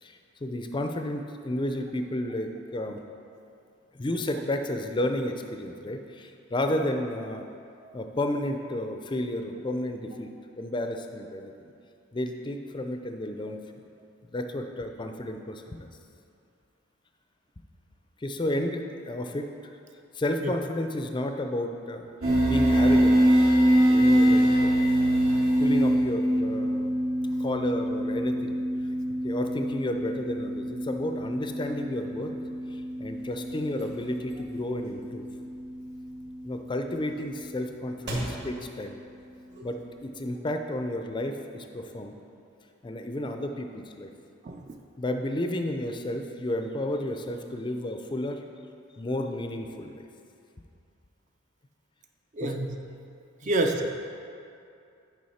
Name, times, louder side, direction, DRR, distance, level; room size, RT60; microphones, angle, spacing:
voice 1, 0.0-3.0 3.9-7.5 7.9-10.3 10.6-11.7 12.1-13.6 14.3-15.9 18.2-19.5 20.1-22.1 22.4-23.2 23.9-24.8 25.6-26.9 27.4-28.6 29.2-32.4 32.7-35.3 36.4-39.0 39.6-42.1 42.8-44.1 45.0-48.4 49.0-50.1 52.4-52.5 53.4-53.5, left 1 dB, 20° left, 5 dB, 0.4 m, -32 dB
sound 1, 22.2-37.3, equal, 85° right, 1.9 m, -25 dB
sound 2, 33.0-40.1, right 1 dB, 55° right, 1.8 m, -43 dB
voice 2, 44.4-44.8 52.3-52.7 53.4-54.0, right 2 dB, 35° right, 4 dB, 0.4 m, -28 dB
9.5 x 5.2 x 4.2 m, 2.5 s
head